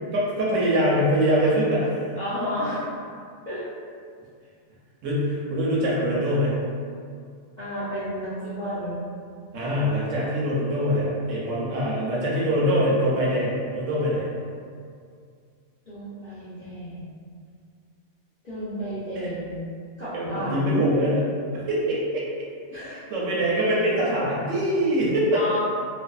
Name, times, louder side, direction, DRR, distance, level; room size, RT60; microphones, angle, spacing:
voice 1, 0.1-2.0 5.0-6.6 9.5-14.3 19.2-19.3 20.1-21.3 21.5-22.2 22.9-25.4, equal, 70° right, -6 dB, 0.9 m, -23 dB
voice 2, 2.1-2.9 3.4-3.6 7.6-9.0 15.9-17.0 18.4-19.6 20.0-20.7 22.7-23.0 25.3-25.6, equal, 55° left, -13 dB, 0.5 m, -32 dB
2.5 x 2.2 x 2.3 m, 2.3 s
omnidirectional pair, 1.5 m